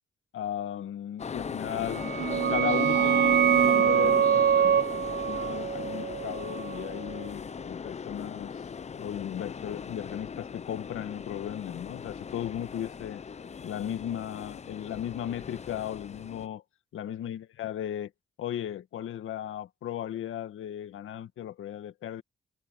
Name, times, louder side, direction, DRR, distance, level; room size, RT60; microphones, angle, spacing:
voice 1, 0.3-2.1 2.5-8.5 8.9-13.2 13.6-16.6 16.9-18.1 18.4-22.2, left 10 dB, 90° left, 1.8 m, -36 dB
sound 1, 1.2-16.5, left 6 dB, 35° left, 0.6 m, -39 dB
sound 2, 1.8-7.3, right 8 dB, 60° right, 0.6 m, -25 dB
cardioid pair, 105°, 20 cm